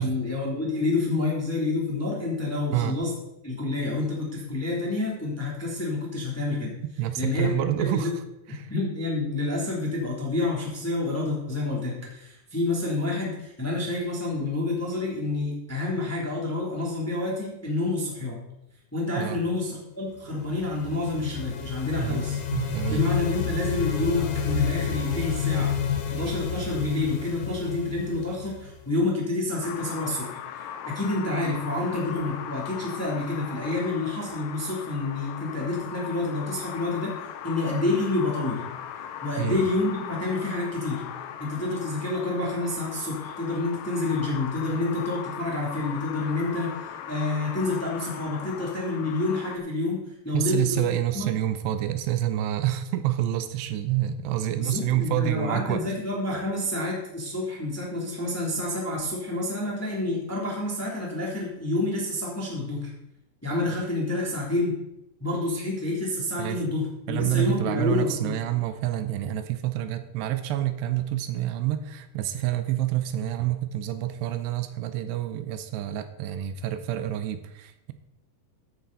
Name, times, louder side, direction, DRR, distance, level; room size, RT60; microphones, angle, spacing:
voice 1, 0.0-3.1 3.4-6.8 7.2-7.5 7.8-8.1 8.5-18.4 18.9-22.4 22.9-25.8 26.1-30.4 30.8-37.2 37.4-38.6 39.2-41.0 41.4-50.8 51.1-51.3 54.6-62.9 63.4-64.8 65.2-68.3, left 2 dB, 5° left, -3 dB, 1.9 m, -28 dB
voice 2, 7.0-8.2 8.5-8.7 19.2-19.4 21.9-22.2 22.5-23.1 39.4-39.6 50.3-55.8 66.4-66.6 67.1-77.9, right 12 dB, 80° right, 11 dB, 2.8 m, -28 dB
sound 1, 20.3-29.0, left 6 dB, 65° left, 2.7 m, -30 dB
sound 2, 29.6-49.6, left 9 dB, 90° left, 3.1 m, -39 dB
13.5 x 9.1 x 4.0 m, 0.84 s
omnidirectional pair, 4.9 m